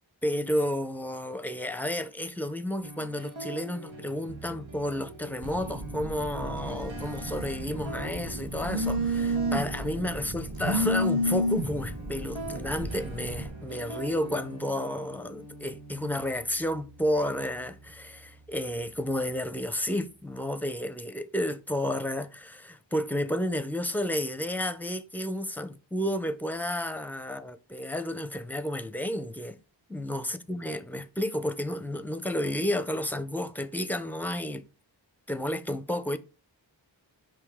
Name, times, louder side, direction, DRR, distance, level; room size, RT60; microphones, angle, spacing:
voice 1, 0.2-29.6 29.9-34.6 35.3-36.2, left 1 dB, 5° left, 0.6 m, -31 dB
sound 1, 2.8-20.8, right 1 dB, 85° right, 1.1 m, -44 dB
Telephone, 5.4-13.5, equal, 50° right, 1.3 m, -31 dB
5.3 x 5.2 x 3.5 m
wide cardioid pair, 50°, 45 cm